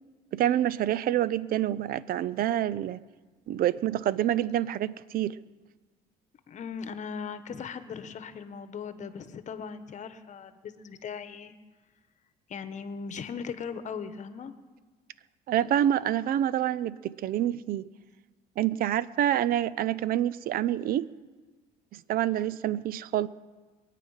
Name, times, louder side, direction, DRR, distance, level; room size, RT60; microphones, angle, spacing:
voice 1, 0.3-3.0 3.5-5.4 15.5-17.9 18.6-21.1 21.9-23.3, right 11 dB, 60° right, 19 dB, 0.6 m, -27 dB
voice 2, 6.5-11.5 12.5-14.5, left 6 dB, 45° left, 11 dB, 1.1 m, -38 dB
23.0 x 9.3 x 5.6 m, 1.3 s
cardioid pair, 110°, 17 cm